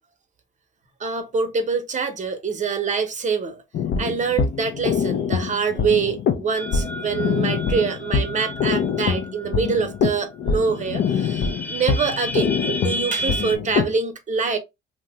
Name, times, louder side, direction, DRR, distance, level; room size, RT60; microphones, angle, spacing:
voice 1, 1.0-3.6 4.0-14.6, right 5 dB, 40° right, 0.8 m, -25 dB
sound 1, 3.7-13.9, left 6 dB, 60° left, 0.5 m, -24 dB
sound 2, 6.5-10.1 10.5-10.6 10.8-13.6, equal, 10° left, 0.4 m, -33 dB
2.8 x 2.1 x 3.4 m
cardioid pair, 90°, 20 cm